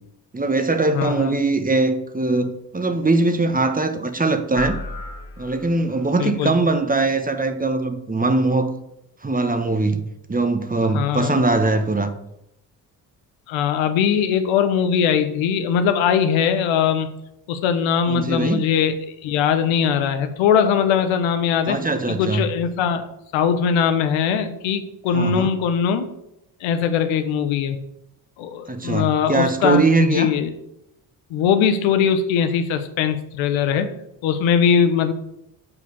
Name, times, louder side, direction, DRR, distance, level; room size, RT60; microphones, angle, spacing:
voice 1, 0.3-4.8 5.4-8.7 9.2-10.0 10.3-12.1 18.1-18.6 21.7-22.5 25.1-25.5 28.7-30.3, right 3 dB, 20° right, 1.1 m, -21 dB
voice 2, 0.9-1.4 6.1-6.5 10.9-11.4 13.5-17.1 17.5-18.9 19.2-21.8 22.2-23.1 23.3-26.1 26.6-27.8 28.4-30.5 31.3-33.9 34.2-35.1, left 7 dB, 85° left, 0.9 m, -20 dB
sound 1, 4.6-6.1, left 2 dB, 65° left, 1.9 m, -34 dB
6.8 x 4.8 x 6.9 m
supercardioid pair, 60°, 45 cm